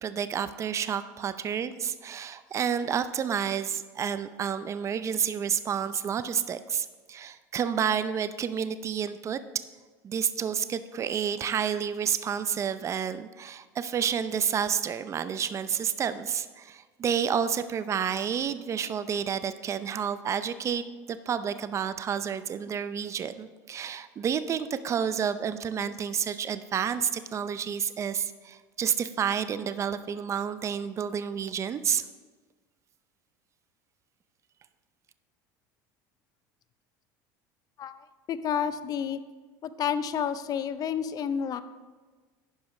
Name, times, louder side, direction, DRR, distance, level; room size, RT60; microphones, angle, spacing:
voice 1, 0.0-9.6 10.0-32.0, right 8 dB, 35° right, 13 dB, 0.5 m, -30 dB
voice 2, 37.8-39.2 39.6-41.6, left 8 dB, 45° left, 13 dB, 0.5 m, -30 dB
11.0 x 5.0 x 4.9 m, 1.4 s
supercardioid pair, 100°, 9 cm